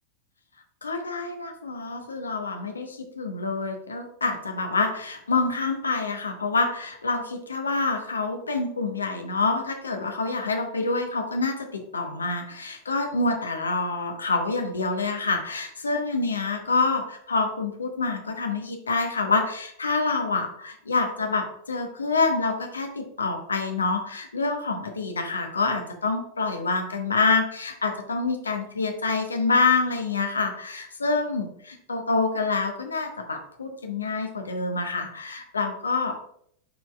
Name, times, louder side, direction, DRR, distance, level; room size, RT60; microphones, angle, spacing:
voice 1, 0.8-36.2, left 3 dB, 75° left, 4 dB, 0.9 m, -27 dB
10.5 x 4.2 x 2.3 m, 0.69 s
figure-of-eight pair, 90°, 0 cm